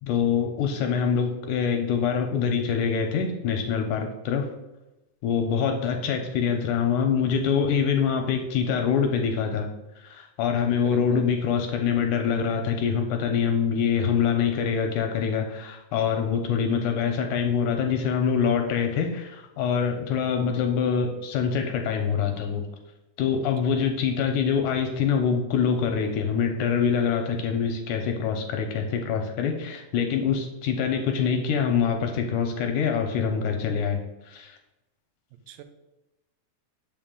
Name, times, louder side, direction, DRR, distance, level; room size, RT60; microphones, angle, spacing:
voice 1, 0.0-4.5 5.2-9.7 10.0-22.6 23.2-34.6, left 6 dB, 80° left, 4 dB, 1.9 m, -25 dB
voice 2, 35.3-35.6, right 11 dB, 85° right, 8 dB, 2.3 m, -45 dB
7.1 x 5.5 x 3.7 m, 1.0 s
omnidirectional pair, 3.9 m